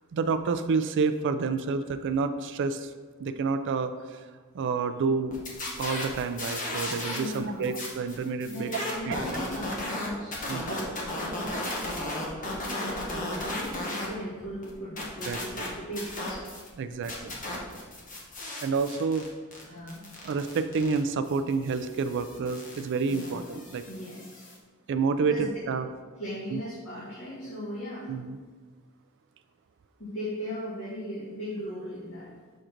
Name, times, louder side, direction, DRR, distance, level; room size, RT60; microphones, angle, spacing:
voice 1, 0.1-2.9 3.2-4.2 4.5-5.4 5.8-8.7 9.1-9.2 10.5-10.8 15.3-15.4 16.8-17.4 18.6-19.3 20.2-23.8 24.9-25.9 26.5-26.6 28.1-28.4, right 4 dB, 55° right, 10 dB, 0.3 m, -29 dB
sound 1, 5.3-7.4 7.6-14.1 14.4-16.7 17.0-24.6, left 1 dB, 40° left, 1.2 m, -35 dB
voice 2, 7.1-7.7 8.5-11.0 12.4-16.4 19.7-20.0 23.1-23.4 23.9-24.5 25.2-25.5 26.2-28.1 30.0-32.3, equal, 70° left, -10 dB, 1.9 m, -38 dB
6.4 x 3.8 x 4.4 m, 1.4 s
head